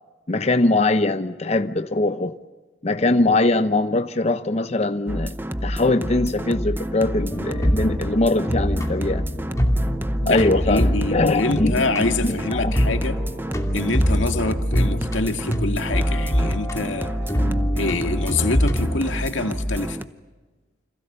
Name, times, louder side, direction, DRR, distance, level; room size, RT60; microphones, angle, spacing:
voice 1, 0.3-2.4 2.8-5.3 5.6-9.2 10.3-11.8 12.2-12.7, left 2 dB, 35° left, 0.7 m, -21 dB
sound 1, 5.1-20.0, equal, 10° right, 0.8 m, -28 dB
sound 2, 7.3-19.0, equal, 15° left, 2.5 m, -25 dB
voice 2, 10.2-13.2 13.7-17.1 17.7-20.0, left 3 dB, 90° left, 2.0 m, -26 dB
29.5 x 26.5 x 6.8 m
head